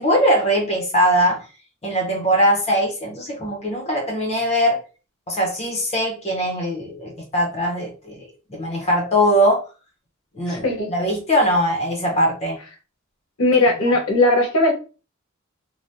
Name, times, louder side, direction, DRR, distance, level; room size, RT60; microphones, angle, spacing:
voice 1, 0.0-1.4 1.8-4.8 5.3-8.2 8.5-9.6 10.4-12.6, equal, 30° left, -1 dB, 0.7 m, -21 dB
voice 2, 10.5-10.9 13.4-14.7, left 2 dB, 80° left, 1 dB, 1.0 m, -18 dB
3.4 x 2.1 x 2.6 m, 0.34 s
head